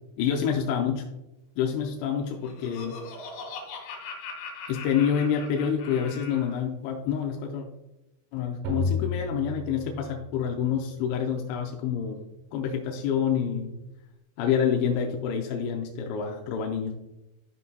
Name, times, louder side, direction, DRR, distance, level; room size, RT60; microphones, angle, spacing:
voice 1, 0.2-1.1 1.6-3.0 4.7-7.7 8.3-12.2 12.5-13.8 14.4-16.9, left 7 dB, 80° left, 1 dB, 2.9 m, -27 dB
Laughter, 2.1-6.6, left 4 dB, 65° left, 3.2 m, -41 dB
sound 1, 8.6-10.6, left 4 dB, 70° right, 3.2 m, -31 dB
12.0 x 5.4 x 2.3 m, 0.96 s
omnidirectional pair, 5.5 m